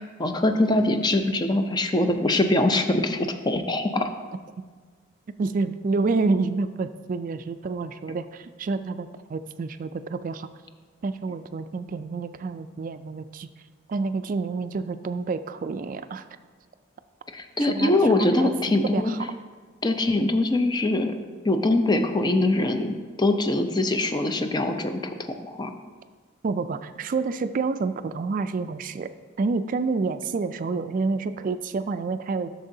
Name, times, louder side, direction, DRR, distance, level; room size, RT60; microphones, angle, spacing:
voice 1, 0.2-4.1 17.3-19.1 19.8-21.1 21.4-25.1 25.4-25.7, left 2 dB, 20° left, 6 dB, 0.5 m, -23 dB
voice 2, 5.4-10.5 11.0-13.5 13.9-16.2 17.7-18.5 18.9-19.3 26.4-29.1 29.4-32.5, right 4 dB, 45° right, 11 dB, 0.3 m, -28 dB
11.0 x 6.7 x 2.7 m, 1.5 s
head